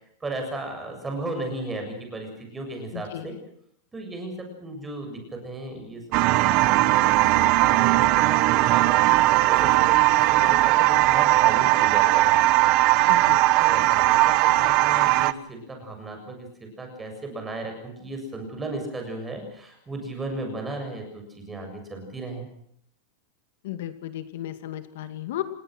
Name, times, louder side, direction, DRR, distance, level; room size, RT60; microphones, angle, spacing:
voice 1, 0.2-3.4 3.9-6.0 6.3-12.4 13.6-22.5, right 2 dB, 10° right, 4 dB, 7.2 m, -35 dB
voice 2, 2.9-3.4 13.1-13.4 23.6-25.4, left 13 dB, 65° left, 9 dB, 2.3 m, -34 dB
sound 1, 6.1-15.3, right 18 dB, 40° right, 1.0 m, -19 dB
30.0 x 18.5 x 6.3 m, 0.69 s
supercardioid pair, 170°, 0 cm